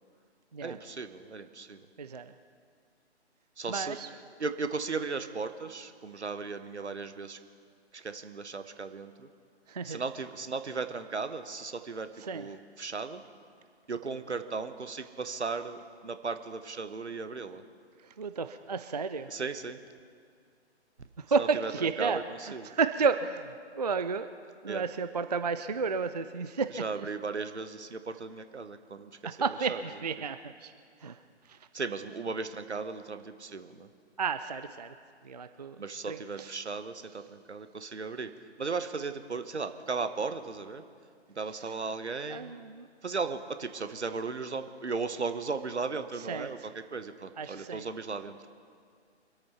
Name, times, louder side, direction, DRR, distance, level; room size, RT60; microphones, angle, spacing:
voice 1, 0.6-1.8 3.6-4.0 4.4-7.4 7.9-9.3 9.8-13.2 13.9-17.6 19.3-19.8 21.4-21.7 22.0-22.7 24.7-24.9 26.8-29.2 29.7-29.8 31.7-33.9 35.8-38.3 38.6-40.8 41.3-42.5 43.0-48.4, right 4 dB, 75° right, 10 dB, 1.1 m, -36 dB
voice 2, 2.0-2.3 3.7-4.1 9.7-10.0 12.2-12.5 18.0-19.3 21.2-24.3 24.6-27.1 29.2-30.7 31.0-31.2 31.5-31.6 34.2-34.9 35.2-35.8 36.1-36.5 41.6-41.7 42.3-42.9 46.2-46.7 47.4-47.9, right 5 dB, 40° right, 10 dB, 0.4 m, -32 dB
24.0 x 8.8 x 5.8 m, 2.2 s
figure-of-eight pair, 140°, 34 cm